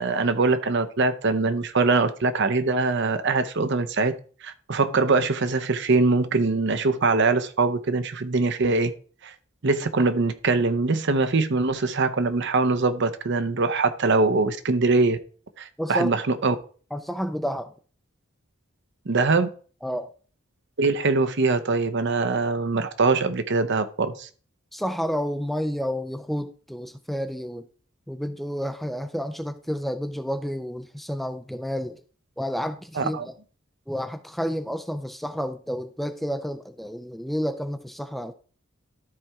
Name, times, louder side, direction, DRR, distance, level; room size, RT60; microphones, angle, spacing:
voice 1, 0.0-4.1 4.4-8.9 9.2-9.3 9.6-15.2 15.6-16.6 19.1-19.5 20.8-24.3 33.0-33.2, right 3 dB, 60° right, 0.8 m, -23 dB
voice 2, 15.8-16.1 16.9-17.7 19.8-20.1 24.7-27.7 28.1-32.0 32.4-33.2 33.9-38.3, equal, ahead, 0.4 m, -30 dB
13.0 x 4.4 x 3.5 m
head